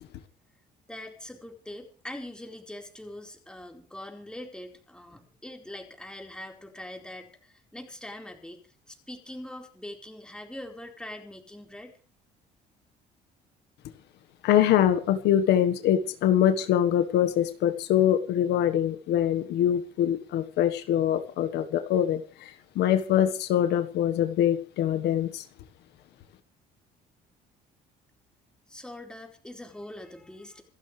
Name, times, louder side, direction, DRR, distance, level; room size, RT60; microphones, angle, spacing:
voice 1, 0.9-11.9 28.7-30.6, left 1 dB, 5° left, 2 dB, 4.5 m, -43 dB
voice 2, 14.4-25.4, left 10 dB, 80° left, 9 dB, 1.5 m, -24 dB
27.0 x 12.5 x 3.3 m, 0.39 s
cardioid pair, 110°, 17 cm